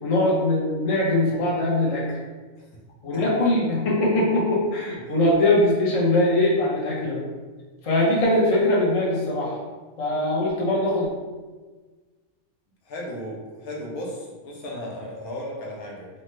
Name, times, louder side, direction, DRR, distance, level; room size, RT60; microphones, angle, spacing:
voice 1, 0.0-2.0 3.0-7.3 7.8-9.6 10.0-11.1, left 1 dB, 50° left, -4 dB, 0.4 m, -21 dB
voice 2, 12.8-16.1, left 1 dB, 85° left, -2 dB, 1.2 m, -35 dB
3.3 x 2.1 x 3.1 m, 1.4 s
omnidirectional pair, 1.5 m